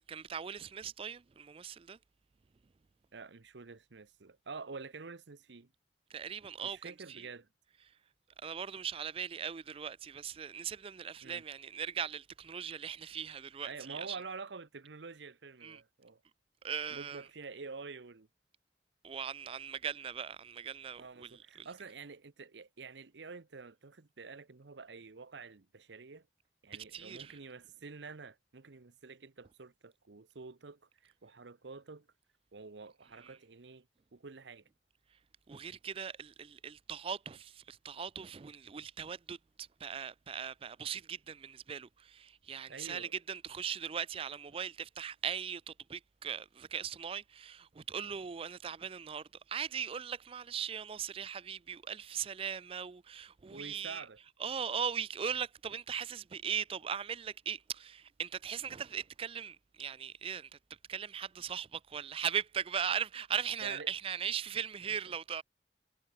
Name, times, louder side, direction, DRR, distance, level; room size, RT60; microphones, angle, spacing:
voice 1, 0.0-2.0 6.1-7.3 8.4-14.2 15.6-15.8 16.6-17.2 19.0-21.7 26.7-27.4 33.2-33.4 35.5-54.0 54.4-60.5 60.9-65.4, right 7 dB, 30° right, 0.4 m, -39 dB
voice 2, 3.1-5.7 6.6-7.5 11.2-11.4 13.6-16.2 16.9-18.3 21.0-26.3 26.6-32.1 32.5-33.9 34.1-34.6 42.7-43.1 53.5-54.2 63.6-63.9 64.9-65.1, right 4 dB, 80° right, 0.9 m, -48 dB
head